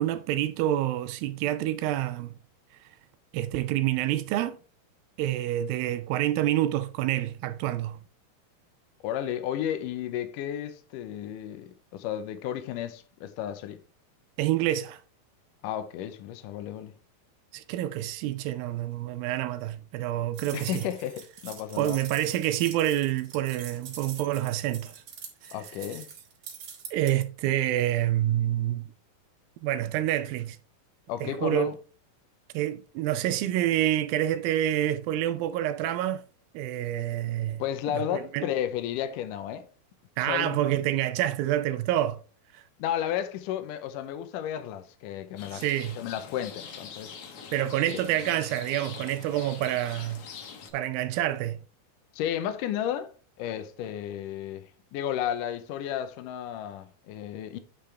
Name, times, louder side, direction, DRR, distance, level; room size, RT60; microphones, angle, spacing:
voice 1, 0.0-2.3 3.3-4.6 5.2-8.0 14.4-15.0 17.5-20.9 21.8-24.9 25.4-25.6 26.9-28.8 29.6-30.6 31.2-31.7 32.5-36.2 36.5-37.6 37.9-38.4 40.2-42.2 42.5-42.6 45.5-46.0 47.5-50.2 50.7-51.6, right 13 dB, 80° right, 2.2 m, -27 dB
voice 2, 9.0-13.8 15.6-16.9 20.5-22.0 25.5-26.1 31.1-31.7 37.6-39.7 40.3-40.8 42.8-45.6 46.0-47.2 52.1-53.1 53.4-54.6 54.9-57.6, left 10 dB, 80° left, 2.0 m, -33 dB
sound 1, 20.3-27.1, right 7 dB, 50° right, 2.9 m, -44 dB
Rain, 45.4-50.7, left 6 dB, 60° left, 2.2 m, -44 dB
10.0 x 5.3 x 3.3 m
omnidirectional pair, 4.6 m